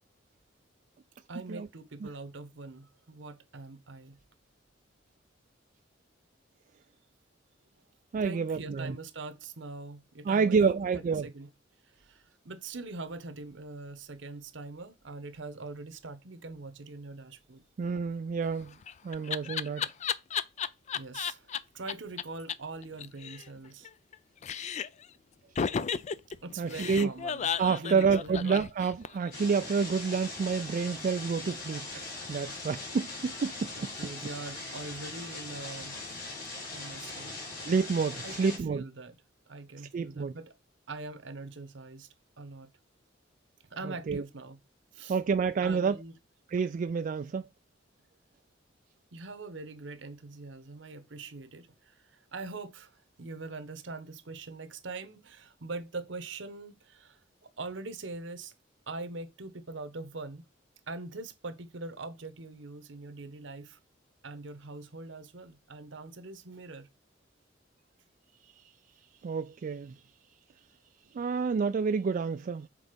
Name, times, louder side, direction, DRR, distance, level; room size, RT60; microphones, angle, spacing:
voice 1, 1.3-4.2 8.2-11.5 11.9-17.6 20.9-23.9 26.4-28.5 33.7-36.0 36.7-37.3 38.2-39.1 39.5-40.5 40.9-42.1 42.4-42.7 43.7-44.6 44.9-45.2 45.6-46.2 49.1-58.5 58.9-60.5 60.9-63.8 64.2-66.9, right 3 dB, 75° right, 1.0 m, -43 dB
voice 2, 8.1-8.9 10.2-11.3 17.8-18.8 19.0-19.9 26.6-27.1 27.6-33.9 34.6-34.7 37.6-38.8 39.9-40.3 43.8-44.2 45.1-46.0 46.5-47.5 69.2-70.0 71.1-72.7, right 5 dB, 45° right, 0.3 m, -29 dB
Laughter, 18.5-21.6 21.9-22.0 22.2-22.3 22.5-22.6 22.8-24.2 24.4-25.1 25.6-29.3, left 7 dB, 35° left, 0.3 m, -33 dB
sound 1, 29.3-38.6, left 3 dB, 50° left, 3.5 m, -41 dB
6.2 x 4.0 x 5.1 m
head